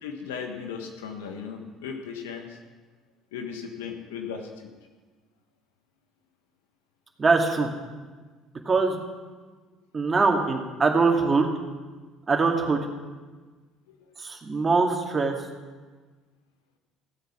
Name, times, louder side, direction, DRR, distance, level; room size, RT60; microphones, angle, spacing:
voice 1, 0.0-2.6 3.3-4.7 13.9-14.0, left 6 dB, 80° left, 4 dB, 1.4 m, -36 dB
voice 2, 7.2-7.7 8.7-9.0 9.9-11.5 12.3-12.8 14.2-15.4, right 4 dB, 30° right, 2 dB, 2.1 m, -22 dB
16.0 x 7.9 x 6.0 m, 1.3 s
hypercardioid pair, 60°, 0 cm